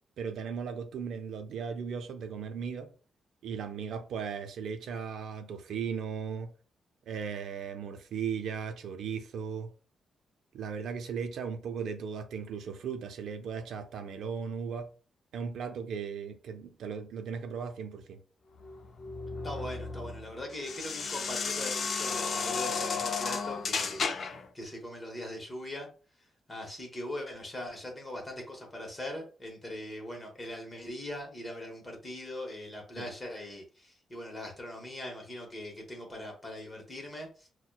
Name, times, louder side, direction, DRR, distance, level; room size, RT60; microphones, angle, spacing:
voice 1, 0.2-2.9 3.4-6.5 7.1-9.7 10.5-14.9 15.3-18.2 33.0-33.1, right 6 dB, 80° right, 0.4 m, -37 dB
sound 1, 18.6-24.5, left 5 dB, 45° left, 0.4 m, -33 dB
voice 2, 19.4-24.3 24.5-25.9 26.2-37.5, left 1 dB, 20° left, 1.0 m, -41 dB
5.8 x 2.1 x 2.2 m
wide cardioid pair, 145°, 0 cm